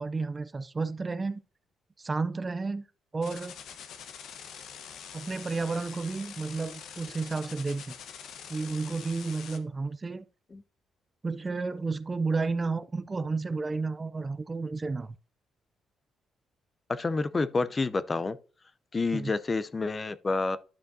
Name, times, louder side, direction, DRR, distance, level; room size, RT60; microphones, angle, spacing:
voice 1, 0.0-1.4 2.0-2.8 3.1-3.5 5.1-7.9 8.5-10.3 11.2-15.2 19.1-19.3, right 4 dB, 25° right, 0.4 m, -32 dB
sound 1, 3.2-9.6, left 7 dB, 75° left, 0.9 m, -45 dB
voice 2, 16.9-18.4 18.9-20.6, left 3 dB, 30° left, 0.5 m, -29 dB
11.0 x 5.1 x 2.6 m
cardioid pair, 90°, 0 cm